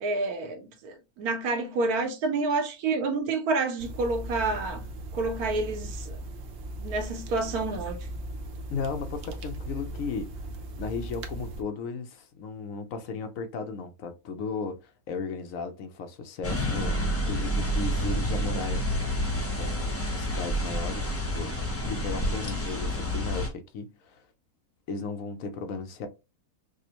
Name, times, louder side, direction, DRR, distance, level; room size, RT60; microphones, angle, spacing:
voice 1, 0.0-4.8 5.1-6.2 6.8-8.0, right 3 dB, 85° right, 1.3 m, -29 dB
sound 1, 3.8-11.6, right 1 dB, 60° right, 0.8 m, -38 dB
voice 2, 8.7-10.5 10.8-17.0 17.2-18.8 19.6-21.6 21.8-24.2 24.9-26.1, left 4 dB, 70° left, 1.0 m, -35 dB
sound 2, 16.4-23.5, equal, 20° left, 0.4 m, -29 dB
5.0 x 2.1 x 2.9 m
omnidirectional pair, 1.5 m